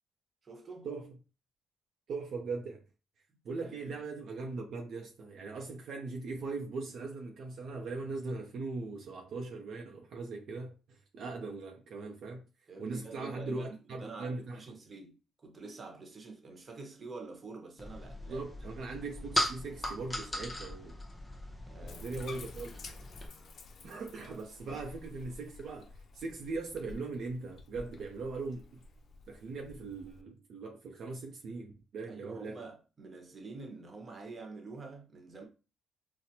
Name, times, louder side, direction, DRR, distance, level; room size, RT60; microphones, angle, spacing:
voice 1, 0.4-0.9 3.6-3.9 12.7-18.4 21.7-22.0 24.7-24.8 32.1-35.4, right 3 dB, 35° right, 1.0 m, -47 dB
voice 2, 2.1-2.8 3.4-12.4 12.8-14.8 18.3-21.0 21.8-22.8 23.8-28.8 29.3-32.6, right 3 dB, 65° right, 0.6 m, -40 dB
sound 1, 17.8-23.3, left 1 dB, 15° left, 0.7 m, -38 dB
Bathtub (filling or washing), 21.9-30.2, left 3 dB, 55° left, 0.4 m, -51 dB
4.1 x 2.1 x 2.7 m
cardioid pair, 90°, 0 cm